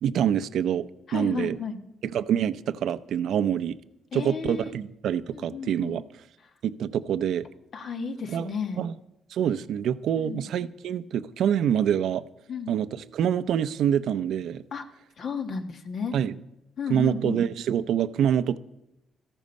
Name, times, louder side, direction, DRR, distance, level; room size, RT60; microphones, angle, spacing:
voice 1, 0.0-1.6 2.0-3.8 4.1-6.0 6.6-7.4 8.3-8.5 8.8-8.9 9.3-12.2 12.7-14.6 16.1-16.3 16.9-18.6, right 9 dB, 75° right, 14 dB, 0.6 m, -26 dB
voice 2, 1.1-1.8 4.1-4.7 5.3-6.0 7.7-8.8 10.2-10.5 12.5-12.8 14.7-14.9 15.2-16.1 16.8-17.4, left 5 dB, 55° left, 6 dB, 1.5 m, -33 dB
13.5 x 12.5 x 5.4 m, 0.88 s
cardioid pair, 90°, 0 cm